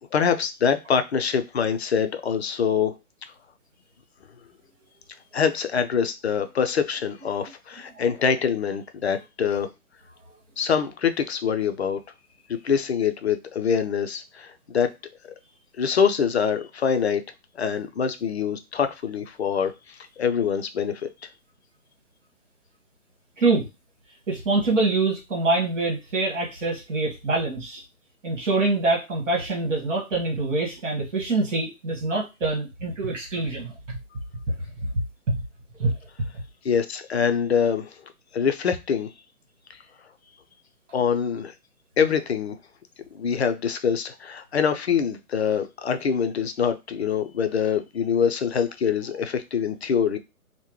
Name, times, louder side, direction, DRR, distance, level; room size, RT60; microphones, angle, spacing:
voice 1, 0.1-2.9 5.3-9.7 10.6-12.0 12.6-14.9 15.8-17.2 17.6-21.1 36.6-37.9 38.3-39.1 40.9-41.5 42.0-42.6 43.1-50.2, left 7 dB, 50° left, 8 dB, 0.5 m, -24 dB
voice 2, 24.3-27.8 28.2-34.0 34.9-35.4 35.8-35.9, right 3 dB, 55° right, -1 dB, 1.5 m, -25 dB
3.6 x 2.1 x 3.0 m, 0.24 s
hypercardioid pair, 155°, 44 cm